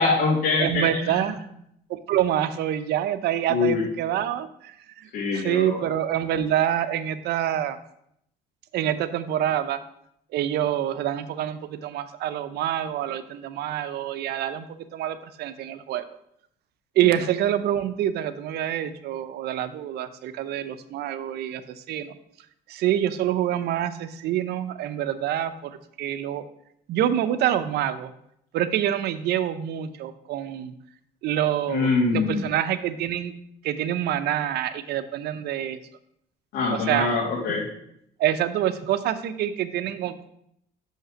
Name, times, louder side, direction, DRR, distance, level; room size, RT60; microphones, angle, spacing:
voice 1, 0.0-0.8 3.5-3.8 5.1-5.8 31.7-32.4 36.5-37.7, left 4 dB, 80° left, -4 dB, 2.0 m, -23 dB
voice 2, 0.6-1.4 1.9-7.8 8.7-9.8 10.3-16.0 16.9-22.2 22.7-26.5 26.9-28.1 28.5-30.7 31.2-33.3 33.6-35.8 36.7-37.1 38.2-40.3, right 11 dB, 75° right, 11 dB, 0.7 m, -26 dB
6.7 x 5.5 x 6.2 m, 0.73 s
cardioid pair, 110°, 17 cm